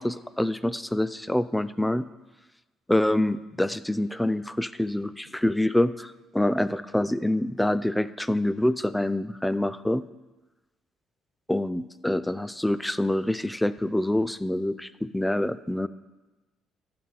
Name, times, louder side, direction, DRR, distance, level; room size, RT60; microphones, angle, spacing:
voice 1, 0.0-2.1 2.9-10.0 11.5-15.9, left 1 dB, 5° left, 15 dB, 0.4 m, -26 dB
13.0 x 4.3 x 7.6 m, 1.1 s
supercardioid pair, 80°, 0 cm